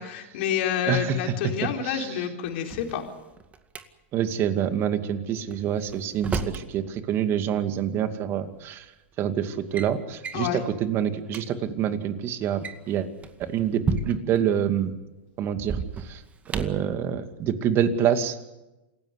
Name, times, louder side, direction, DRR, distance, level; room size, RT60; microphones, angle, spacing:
voice 1, 0.0-3.0 10.3-10.6, left 9 dB, 60° left, 2 dB, 4.0 m, -28 dB
voice 2, 0.9-1.3 1.6-2.2 4.1-8.9 9.2-12.6 12.9-13.1 13.5-14.9 15.4-16.2 16.5-18.4, right 9 dB, 40° right, 8 dB, 2.4 m, -26 dB
Drawer open or close, 2.5-3.8 5.5-6.7 8.0-8.1 8.9-9.1 9.5-9.9 10.2-10.5 11.0-11.1 11.3-11.4 12.4-14.4 15.6-16.9, right 4 dB, 20° right, 2.1 m, -32 dB
28.0 x 16.5 x 8.2 m, 1.0 s
hypercardioid pair, 115°, 7 cm